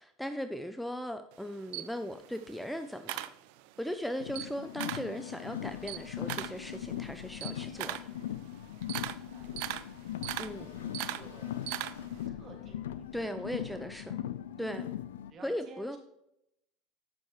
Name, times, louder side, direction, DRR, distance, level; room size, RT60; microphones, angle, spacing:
voice 1, 0.0-3.2 3.8-8.1 10.4-10.7 13.1-14.0 14.6-14.9 15.4-16.0, equal, ahead, 9 dB, 0.5 m, -38 dB
Camera, 1.3-3.9 4.2-5.2 5.5-12.2, right 15 dB, 70° right, 0.4 m, -40 dB
Car, 4.2-15.3, left 11 dB, 90° left, 0.3 m, -40 dB
sound 1, 5.6-14.2, left 4 dB, 70° left, 2.0 m, -57 dB
voice 2, 9.1-9.6 10.4-11.6 12.3-13.3 13.6-13.9 14.7-14.9 15.3-16.0, right 3 dB, 40° right, 3 dB, 2.2 m, -54 dB
9.3 x 6.5 x 3.1 m, 0.82 s
hypercardioid pair, 90°, 0 cm